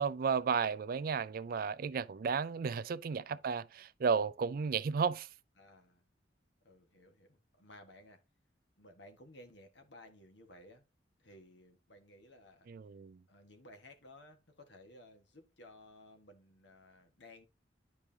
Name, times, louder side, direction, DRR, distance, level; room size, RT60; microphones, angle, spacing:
voice 1, 0.0-5.3 12.7-13.2, right 6 dB, 55° right, 0.4 m, -33 dB
voice 2, 5.6-6.1 6.6-8.2 8.8-10.8 11.2-12.7 13.3-17.5, left 1 dB, 75° left, 1.6 m, -57 dB
11.0 x 4.8 x 2.8 m
head